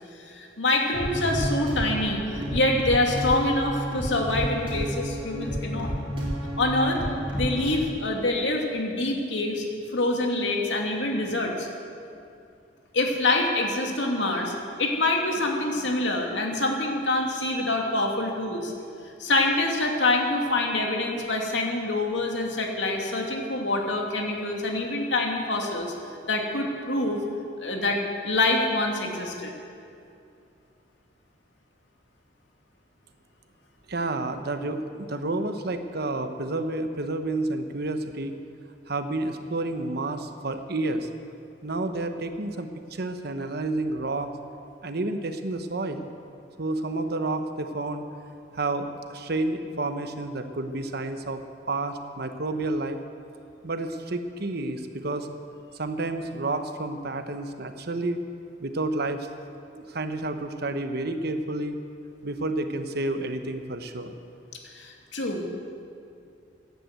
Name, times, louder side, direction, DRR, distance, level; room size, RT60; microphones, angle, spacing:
voice 1, 0.2-5.9 6.6-7.0 7.3-9.6 9.9-11.7 12.9-14.5 14.8-18.7 19.2-25.9 26.3-27.2 27.6-29.5 64.7-65.5, left 2 dB, 75° left, 1 dB, 2.4 m, -26 dB
sound 1, 0.9-7.7, equal, 30° right, 4.1 m, -30 dB
voice 2, 33.9-38.3 38.9-41.1 41.6-44.3 44.8-46.1 46.6-48.0 48.5-51.4 51.7-53.0 53.6-55.3 55.7-58.2 58.6-59.2 59.7-61.8 62.2-64.1, right 2 dB, 60° right, 7 dB, 1.0 m, -30 dB
15.5 x 11.0 x 8.0 m, 2.5 s
head